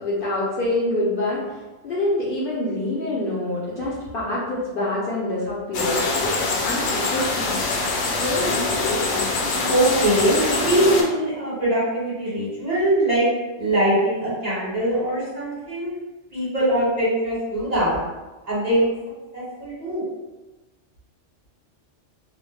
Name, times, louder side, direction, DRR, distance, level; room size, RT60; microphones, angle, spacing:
voice 1, 0.0-6.4 6.6-7.6 8.1-9.3, left 1 dB, 55° left, -7 dB, 0.7 m, -26 dB
sound 1, 5.7-11.0, left 3 dB, 80° left, 0.9 m, -24 dB
voice 2, 9.7-13.3 13.5-15.9 16.3-18.0 18.5-18.9 19.3-20.0, right 1 dB, 35° right, -9 dB, 1.0 m, -22 dB
2.4 x 2.0 x 3.2 m, 1.1 s
omnidirectional pair, 1.3 m